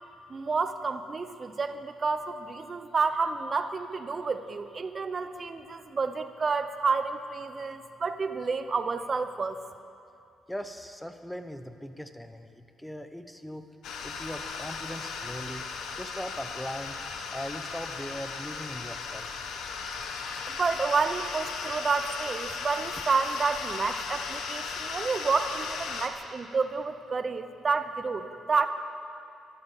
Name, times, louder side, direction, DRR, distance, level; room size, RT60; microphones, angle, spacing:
voice 1, 0.3-9.6 20.5-28.7, right 4 dB, 35° right, 10 dB, 0.9 m, -30 dB
voice 2, 10.5-13.8 14.0-15.6 16.0-17.0 17.3-19.3, equal, 5° left, 8 dB, 1.0 m, -39 dB
sound 1, 13.8-26.1, left 5 dB, 80° left, 1.3 m, -36 dB
13.5 x 12.0 x 7.4 m, 2.5 s
cardioid pair, 90°, 0 cm